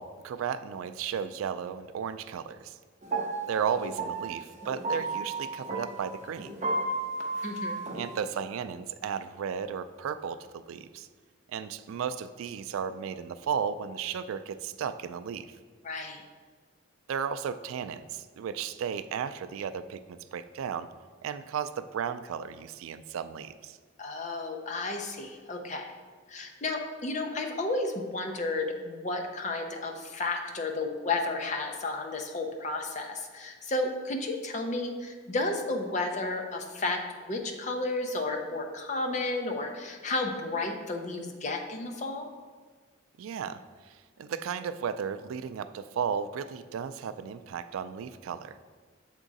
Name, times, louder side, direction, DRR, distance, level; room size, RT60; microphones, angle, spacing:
voice 1, 0.0-2.8 3.5-6.5 7.9-11.1 11.5-15.6 17.1-20.9 21.2-23.8 43.2-48.6, right 7 dB, 90° right, 12 dB, 0.3 m, -34 dB
sound 1, 3.0-8.2, right 2 dB, 35° right, 0.6 m, -34 dB
voice 2, 7.4-7.8 15.8-16.2 24.0-25.9 26.3-42.3, left 2 dB, 35° left, 3 dB, 0.6 m, -32 dB
7.1 x 3.6 x 4.0 m, 1.5 s
head